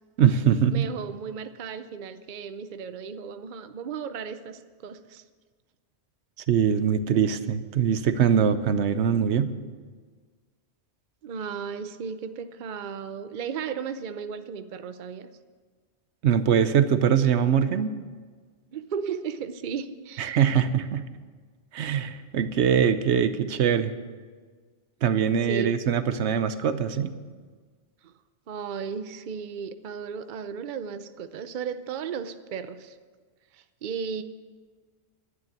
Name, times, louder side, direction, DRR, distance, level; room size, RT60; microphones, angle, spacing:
voice 1, 0.2-0.9 6.5-9.5 16.2-17.9 20.2-21.1 21.7-23.9 25.0-27.1, right 8 dB, 85° right, 12 dB, 1.0 m, -22 dB
voice 2, 0.7-5.2 11.2-15.3 18.7-20.4 25.5-25.8 28.0-28.1 28.5-33.0 33.5-34.2, right 6 dB, 50° right, 11 dB, 0.7 m, -35 dB
11.5 x 9.4 x 8.7 m, 1.5 s
omnidirectional pair, 1.1 m